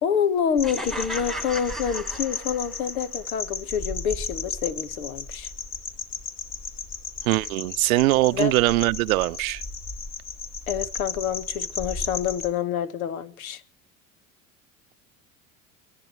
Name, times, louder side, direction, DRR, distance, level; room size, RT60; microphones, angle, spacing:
voice 1, 0.0-5.5 8.3-8.5 10.7-13.6, left 8 dB, 80° left, 1.7 m, -27 dB
sound 1, 0.6-12.5, left 4 dB, 40° left, 3.9 m, -35 dB
sound 2, 0.6-2.9, right 1 dB, ahead, 2.4 m, -36 dB
voice 2, 7.2-9.6, right 19 dB, 75° right, 0.7 m, -22 dB
29.5 x 13.5 x 3.2 m
hypercardioid pair, 70°, 42 cm